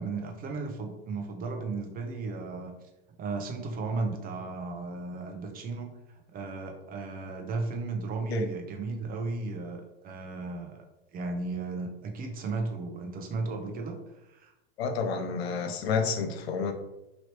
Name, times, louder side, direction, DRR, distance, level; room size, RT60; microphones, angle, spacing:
voice 1, 0.0-2.7 3.2-10.8 11.1-14.0 14.2-14.5, right 3 dB, 30° right, 3 dB, 0.7 m, -35 dB
voice 2, 14.8-16.7, left 5 dB, 85° left, 7 dB, 0.6 m, -29 dB
3.0 x 2.8 x 3.0 m, 0.92 s
hypercardioid pair, 110°, 31 cm